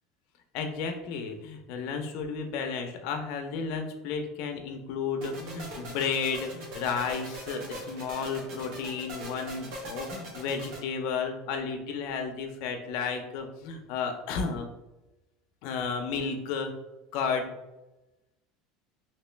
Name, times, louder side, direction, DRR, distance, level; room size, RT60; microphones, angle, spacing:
voice 1, 0.5-14.7 15.6-16.7 17.1-17.5, left 5 dB, 60° left, 4 dB, 0.5 m, -32 dB
sound 1, 5.2-10.8, right 1 dB, 65° right, 1.2 m, -41 dB
2.9 x 2.9 x 3.2 m, 0.99 s
cardioid pair, 160°, 0 cm